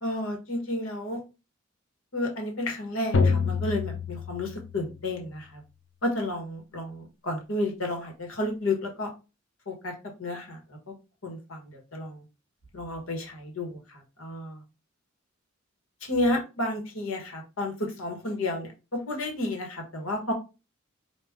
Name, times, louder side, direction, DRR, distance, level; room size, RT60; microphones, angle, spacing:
voice 1, 0.0-1.2 2.1-5.6 6.0-9.1 9.7-9.9 10.2-10.6 11.2-12.2 12.7-13.8 14.2-14.6 16.1-20.3, left 1 dB, 80° left, 3 dB, 1.3 m, -31 dB
sound 1, 3.1-5.1, left 4 dB, 65° left, 0.6 m, -27 dB
4.9 x 2.4 x 3.5 m, 0.29 s
head